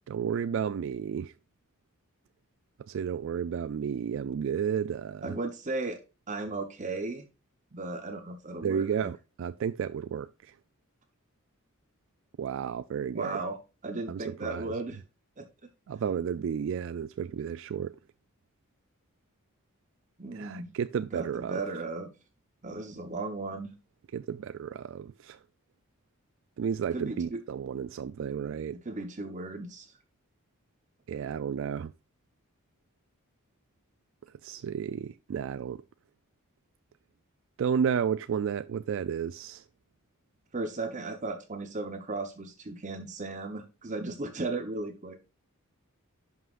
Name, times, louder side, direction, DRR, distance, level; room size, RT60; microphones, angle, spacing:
voice 1, 0.1-1.3 2.8-5.4 8.6-10.5 12.4-13.4 14.1-14.7 15.9-18.0 20.3-21.6 24.1-25.4 26.6-28.8 31.1-31.9 34.4-35.8 37.6-39.6, right 7 dB, 60° right, 0.3 m, -32 dB
voice 2, 5.2-6.0 6.3-7.2 7.7-9.1 13.1-13.6 13.8-15.0 15.4-15.5 20.2-20.7 21.1-22.1 22.6-23.7 26.9-27.4 28.8-29.9 40.5-45.2, right 3 dB, 35° right, 0.8 m, -36 dB
11.0 x 5.6 x 2.4 m
head